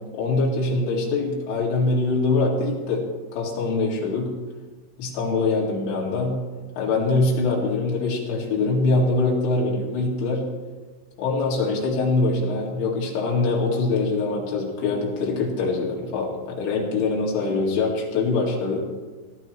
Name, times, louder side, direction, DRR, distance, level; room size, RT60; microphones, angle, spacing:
voice 1, 0.1-3.0 3.3-4.3 5.0-6.4 6.8-10.5 11.2-18.8, left 3 dB, 75° left, -4 dB, 4.6 m, -23 dB
19.0 x 13.0 x 3.1 m, 1.4 s
omnidirectional pair, 5.2 m